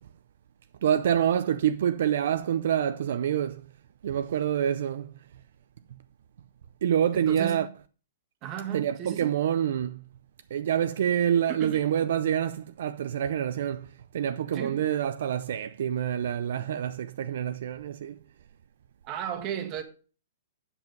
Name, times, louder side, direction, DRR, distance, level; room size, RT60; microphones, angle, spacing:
voice 1, 0.8-3.6 4.0-5.1 6.8-7.7 8.7-10.0 10.5-18.2, right 9 dB, 60° right, 0.5 m, -27 dB
voice 2, 7.1-7.7 8.4-9.3 11.5-11.8 14.5-14.8 19.0-19.8, right 10 dB, 25° right, 1.5 m, -34 dB
8.1 x 7.2 x 5.3 m
hypercardioid pair, 165°, 0 cm